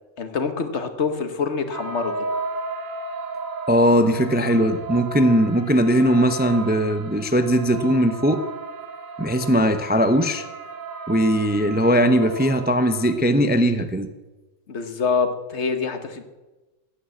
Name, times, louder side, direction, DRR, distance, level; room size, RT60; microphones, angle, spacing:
voice 1, 0.2-2.1 14.7-16.2, left 5 dB, 60° left, 8 dB, 1.5 m, -25 dB
sound 1, 1.7-13.1, right 3 dB, 85° right, 1.7 m, -34 dB
voice 2, 3.7-8.4 9.2-10.5 11.1-14.1, equal, 10° right, 8 dB, 0.6 m, -19 dB
15.0 x 9.9 x 7.8 m, 1.2 s
omnidirectional pair, 1.3 m